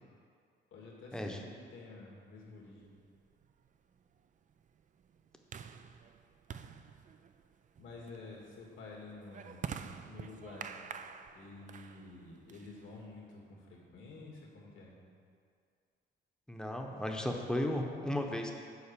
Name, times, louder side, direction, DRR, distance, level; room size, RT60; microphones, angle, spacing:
voice 1, 0.7-2.9 7.8-9.7 10.1-10.8 11.3-15.0, left 3 dB, 75° left, -3 dB, 2.1 m, -50 dB
sound 1, 2.8-13.2, right 7 dB, 40° right, 0.4 m, -48 dB
voice 2, 16.5-18.5, left 1 dB, 5° left, 2 dB, 0.9 m, -35 dB
7.2 x 4.6 x 6.9 m, 2.3 s
cardioid pair, 90°, 20 cm